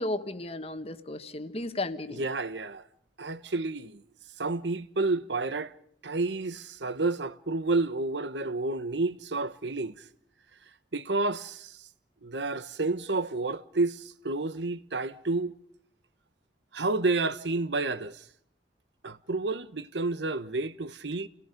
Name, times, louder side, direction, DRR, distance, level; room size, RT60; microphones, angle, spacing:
voice 1, 0.0-2.2, left 2 dB, 35° left, 1.4 m, -34 dB
voice 2, 2.1-2.8 3.2-4.0 4.4-5.7 6.0-9.9 10.9-11.9 12.2-15.5 16.7-18.2 19.0-21.3, right 3 dB, 85° right, 1.1 m, -30 dB
29.5 x 18.0 x 5.2 m
head